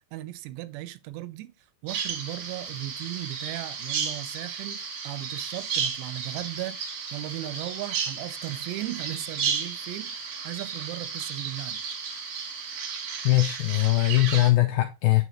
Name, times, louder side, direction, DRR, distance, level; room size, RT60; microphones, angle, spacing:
voice 1, 0.1-1.5 1.8-11.8, right 16 dB, 85° right, 2.8 m, -37 dB
Bird vocalization bird call bird song, 1.9-14.5, right 6 dB, 60° right, 2.0 m, -33 dB
voice 2, 13.2-15.2, left 18 dB, 80° left, 2.1 m, -21 dB
9.1 x 4.7 x 3.0 m
omnidirectional pair, 4.9 m